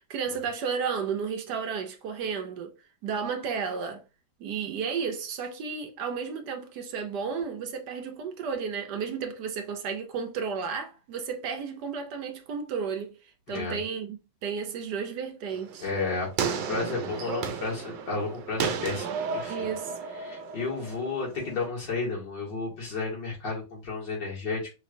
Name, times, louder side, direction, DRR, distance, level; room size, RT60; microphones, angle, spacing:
voice 1, 0.0-2.8 3.0-4.0 4.4-13.2 13.5-14.2 14.4-15.9 19.5-20.0, right 6 dB, 70° right, 1.3 m, -33 dB
voice 2, 13.5-13.8 15.8-19.1 19.3-19.7 20.2-24.7, left 4 dB, 75° left, 3.0 m, -32 dB
sound 1, 15.5-21.7, right 6 dB, 90° right, 1.3 m, -34 dB
5.1 x 3.1 x 2.6 m
omnidirectional pair, 1.9 m